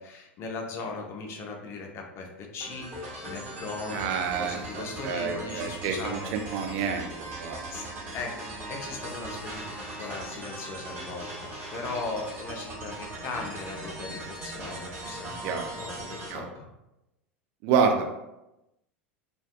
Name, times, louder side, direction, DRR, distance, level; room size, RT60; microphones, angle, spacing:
voice 1, 0.0-4.1 4.4-6.2 6.5-6.6 7.7-7.9 8.1-15.5 15.8-16.7, left 3 dB, 40° left, 2 dB, 0.5 m, -38 dB
sound 1, 2.6-16.3, right 1 dB, 35° right, 1.0 m, -39 dB
voice 2, 3.9-7.6 15.4-15.7 16.3-16.5 17.6-18.1, right 6 dB, 50° right, 4 dB, 0.4 m, -28 dB
2.5 x 2.2 x 2.3 m, 0.94 s
figure-of-eight pair, 80°, 7 cm